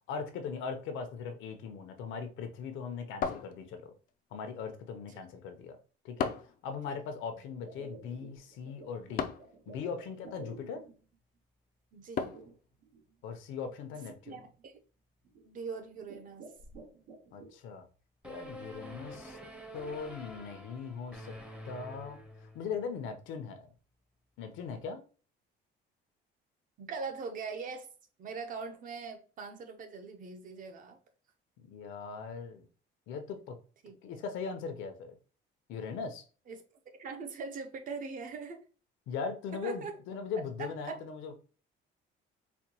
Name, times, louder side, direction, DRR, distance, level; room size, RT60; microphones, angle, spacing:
voice 1, 0.1-3.9 4.3-5.8 6.0-6.3 6.6-9.3 9.7-10.8 13.2-14.4 17.3-17.8 18.2-19.4 19.7-21.4 21.6-23.7 24.4-25.0 31.6-32.7 33.1-33.6 34.0-35.1 35.7-36.2 39.1-41.3, left 5 dB, 80° left, 0.7 m, -39 dB
sound 1, 3.2-4.1 6.2-6.6 9.2-9.6 12.2-12.6, left 7 dB, 45° left, 0.4 m, -35 dB
sound 2, 7.6-11.2 12.3-13.0 13.7-13.8 14.3-14.6 15.2-15.6 15.9-17.5, right 4 dB, 90° right, 1.2 m, -51 dB
voice 2, 11.9-12.3 14.3-14.8 15.4-16.5 26.8-27.9 28.2-31.0 33.8-34.0 36.5-36.6 37.0-38.6 39.5-39.9 40.6-41.0, right 5 dB, 45° right, 0.7 m, -41 dB
sound 3, 18.2-22.9, equal, 5° right, 0.6 m, -47 dB
4.3 x 2.2 x 2.9 m
cardioid pair, 140°, 20 cm